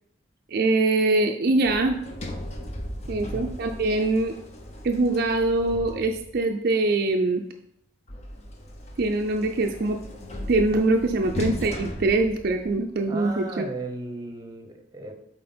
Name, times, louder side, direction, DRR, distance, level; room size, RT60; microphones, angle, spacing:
voice 1, 0.5-2.0 3.1-4.3 4.8-7.4 9.0-10.0 10.5-13.7, right 2 dB, 50° right, 4 dB, 0.4 m, -23 dB
Sliding door, 1.6-6.5 8.1-13.0, left 1 dB, 35° left, 0.9 m, -37 dB
voice 2, 3.0-3.5 13.1-15.1, right 2 dB, 20° right, 5 dB, 0.9 m, -36 dB
7.5 x 4.3 x 4.3 m, 0.75 s
head